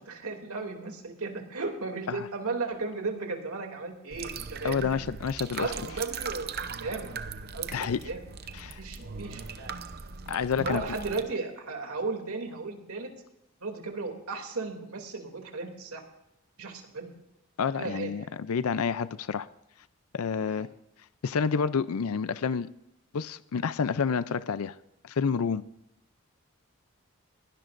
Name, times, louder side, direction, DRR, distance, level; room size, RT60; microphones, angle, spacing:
voice 1, 0.1-5.0 5.6-7.1 7.5-8.2 8.8-9.7 10.6-13.1 13.6-16.0 16.6-17.1 17.8-18.3 20.6-20.7, right 3 dB, 90° right, 3 dB, 2.7 m, -35 dB
sound 1, 4.1-11.2, right 5 dB, 45° right, 0.7 m, -39 dB
voice 2, 4.6-5.7 7.7-8.0 8.5-8.8 10.3-10.8 17.6-19.5 20.1-20.7 21.2-22.7 23.1-24.8 25.0-25.6, left 6 dB, 85° left, 15 dB, 0.5 m, -29 dB
21.5 x 17.0 x 2.6 m, 0.86 s
head